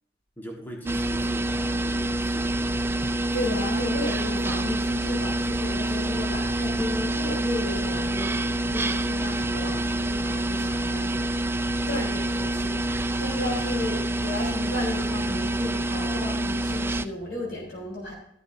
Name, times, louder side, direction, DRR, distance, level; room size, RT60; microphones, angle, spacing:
voice 1, 0.4-2.8 9.7-10.1, equal, 10° left, 0 dB, 1.5 m, -41 dB
sound 1, 0.9-17.1, right 1 dB, 15° right, 0.4 m, -27 dB
voice 2, 3.3-11.6 11.9-18.1, left 1 dB, 65° left, -3 dB, 3.8 m, -34 dB
13.0 x 12.0 x 2.7 m, 0.75 s
head